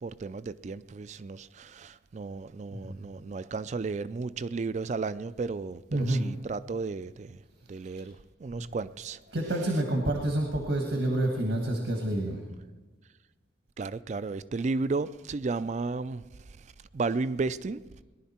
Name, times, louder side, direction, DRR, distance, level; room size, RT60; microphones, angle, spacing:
voice 1, 0.0-7.4 7.7-9.2 13.8-16.2 16.9-17.9, right 4 dB, 40° right, 0.3 m, -33 dB
voice 2, 5.9-6.3 7.9-8.0 8.5-8.6 9.3-12.4, right 1 dB, 80° right, 1.5 m, -28 dB
19.5 x 11.0 x 4.3 m
head